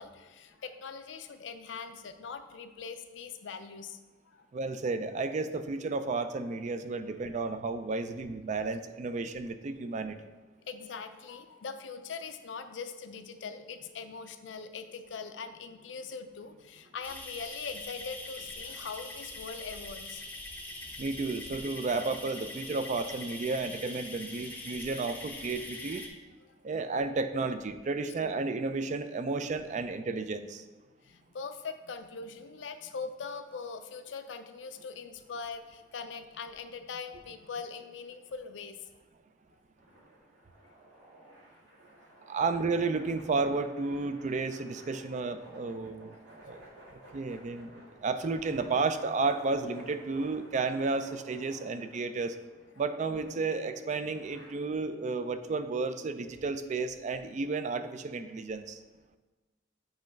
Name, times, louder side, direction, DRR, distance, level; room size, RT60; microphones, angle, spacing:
voice 1, 0.0-4.0 4.3-4.5 7.1-7.2 10.7-20.2 26.5-26.6 31.0-38.9 46.3-47.2, left 5 dB, 80° left, 9 dB, 0.5 m, -42 dB
voice 2, 4.5-10.2 21.0-26.0 26.6-30.6 42.3-46.2 46.4-46.6 47.1-47.7 48.0-52.4 52.8-58.8, right 3 dB, 40° right, 10 dB, 0.4 m, -32 dB
sound 1, 17.0-26.1, left 2 dB, 10° left, 0.7 m, -43 dB
sound 2, 39.8-54.5, right 1 dB, 90° right, 2.1 m, -55 dB
7.9 x 3.1 x 5.1 m, 1.2 s
head